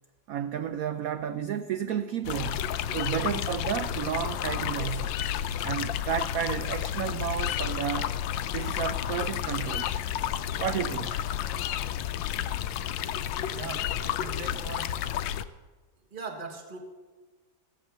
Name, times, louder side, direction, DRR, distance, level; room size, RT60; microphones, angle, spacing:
voice 1, 0.3-2.6 2.9-5.2 5.6-8.1 8.5-9.9 10.6-11.2, right 9 dB, 85° right, 11 dB, 0.7 m, -32 dB
sound 1, 2.2-15.4, left 10 dB, 80° left, 1.3 m, -31 dB
voice 2, 13.5-14.9 15.4-15.5 16.1-16.8, right 4 dB, 30° right, 3 dB, 1.6 m, -40 dB
15.0 x 8.4 x 6.9 m, 1.3 s
omnidirectional pair, 2.1 m